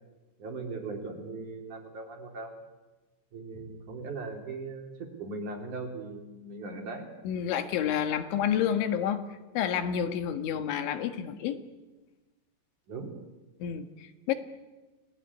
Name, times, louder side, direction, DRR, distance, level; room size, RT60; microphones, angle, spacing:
voice 1, 0.4-2.6 3.3-7.1 12.9-13.1, right 3 dB, 45° right, 2 dB, 4.3 m, -39 dB
voice 2, 7.3-11.6 13.6-14.3, left 9 dB, 80° left, 8 dB, 3.9 m, -29 dB
29.5 x 20.0 x 9.8 m, 1.2 s
omnidirectional pair, 5.3 m